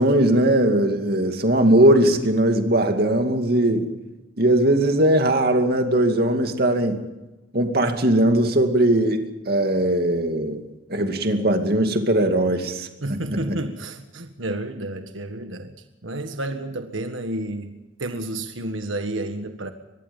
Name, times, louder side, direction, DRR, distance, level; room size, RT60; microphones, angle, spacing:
voice 1, 0.0-3.9 4.4-7.0 7.5-10.6 10.9-13.6, right 1 dB, 55° right, 5 dB, 2.5 m, -20 dB
voice 2, 13.0-15.7 16.0-17.7 18.0-19.7, right 1 dB, 90° right, 6 dB, 1.6 m, -30 dB
24.5 x 20.5 x 5.5 m, 1.1 s
head